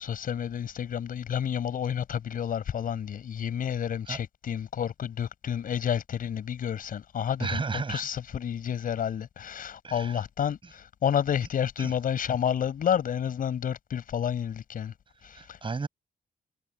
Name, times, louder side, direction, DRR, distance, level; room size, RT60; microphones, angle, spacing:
voice 1, 0.0-7.6 7.9-14.9 15.2-15.6, left 9 dB, 70° left, 6.6 m, -30 dB
voice 2, 7.4-8.1 9.8-10.2 10.6-10.7 11.8-12.0 15.3-15.9, right 4 dB, 35° right, 6.5 m, -33 dB
cardioid pair, 90°, 15 cm